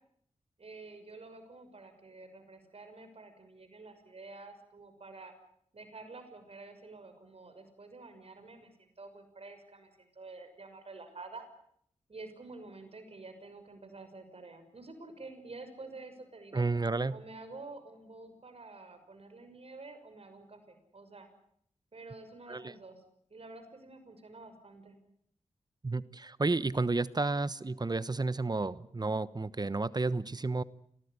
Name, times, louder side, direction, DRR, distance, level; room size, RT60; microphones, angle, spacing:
voice 1, 0.6-5.3 5.7-11.5 12.1-16.6 17.1-21.3 21.9-23.0 23.3-25.0, right 3 dB, 55° right, 8 dB, 6.2 m, -49 dB
voice 2, 16.5-17.1 22.5-22.7 25.8-30.6, right 3 dB, 35° right, 17 dB, 1.1 m, -31 dB
26.0 x 18.5 x 9.8 m, 0.69 s
cardioid pair, 55°, 12 cm